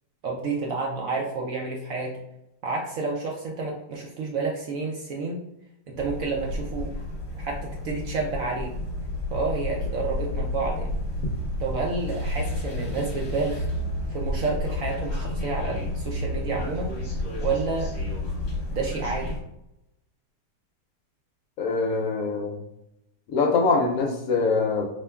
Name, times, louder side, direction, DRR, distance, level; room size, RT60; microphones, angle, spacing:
voice 1, 0.2-2.2 2.6-5.4 5.9-6.9 7.4-8.7 9.3-10.9 11.6-13.7 14.1-16.9 17.4-17.9 18.7-19.4, right 4 dB, 70° right, -1 dB, 0.8 m, -30 dB
sound 1, 6.0-19.4, left 1 dB, 45° left, 1.1 m, -31 dB
voice 2, 21.6-22.5 23.3-24.8, left 4 dB, 70° left, 2 dB, 0.9 m, -23 dB
4.3 x 2.9 x 2.2 m, 0.84 s
omnidirectional pair, 1.9 m